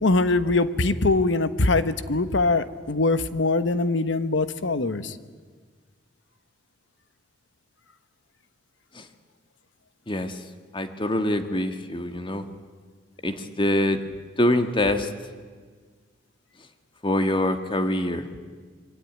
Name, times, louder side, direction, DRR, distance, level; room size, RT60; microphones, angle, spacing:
voice 1, 0.0-5.2, left 2 dB, 75° left, 12 dB, 1.2 m, -22 dB
voice 2, 10.1-10.4 10.7-12.5 13.2-14.0 14.4-15.1 17.0-18.2, left 1 dB, 25° left, 8 dB, 1.6 m, -24 dB
26.0 x 23.5 x 9.5 m, 1.5 s
head